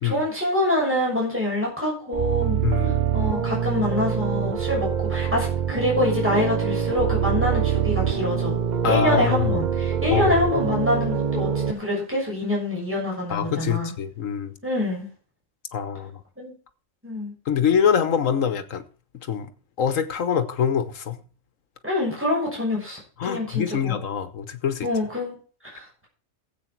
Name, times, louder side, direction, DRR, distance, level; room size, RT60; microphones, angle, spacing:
voice 1, 0.0-8.6 8.8-13.9 14.6-15.1 16.4-16.5 17.0-17.3 21.8-24.0 24.8-25.4 25.6-26.1, left 1 dB, 10° right, 6.8 m, -26 dB
sound 1, 2.1-11.7, right 8 dB, 45° right, 0.6 m, -25 dB
voice 2, 2.6-3.0 8.8-9.6 10.1-10.7 13.3-14.5 15.7-16.2 17.5-18.8 19.3-19.5 19.8-21.2 23.2-24.9, left 8 dB, 75° left, 1.5 m, -24 dB
15.0 x 8.3 x 4.6 m
omnidirectional pair, 1.3 m